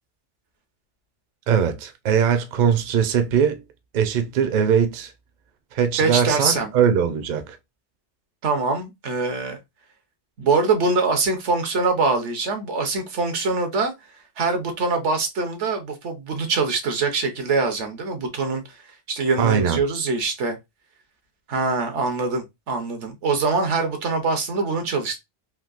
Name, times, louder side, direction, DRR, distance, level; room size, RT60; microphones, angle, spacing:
voice 1, 1.5-3.6 3.9-5.1 5.7-7.6 19.4-19.8, right 7 dB, 55° right, 0.6 m, -21 dB
voice 2, 6.0-6.7 8.4-9.6 10.4-13.9 14.4-18.6 19.1-20.6 21.5-25.2, right 4 dB, 85° right, 1.2 m, -23 dB
3.5 x 2.7 x 2.4 m
omnidirectional pair, 1.2 m